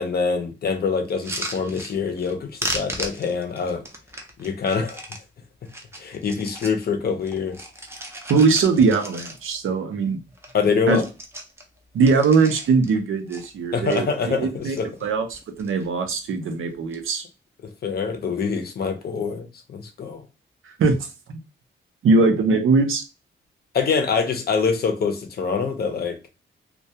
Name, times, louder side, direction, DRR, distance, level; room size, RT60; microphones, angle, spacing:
voice 1, 0.0-3.8 4.4-5.0 6.0-7.6 10.5-11.1 13.7-14.9 17.8-20.2 23.7-26.2, left 5 dB, 50° left, 0.5 m, -25 dB
sound 1, 1.1-2.3 2.6-5.2 5.7-6.8 7.2-9.7 10.0-10.1 10.3-10.6 10.9-12.9 13.3-14.0 14.5-15.0 15.3-15.9 16.7-17.0, right 1 dB, 10° right, 0.4 m, -35 dB
voice 2, 8.3-10.2 10.9-11.0 11.9-14.1 14.4-17.2 20.7-21.4 22.0-23.0, right 4 dB, 85° right, 0.5 m, -21 dB
2.2 x 2.2 x 2.7 m
wide cardioid pair, 140°, 20 cm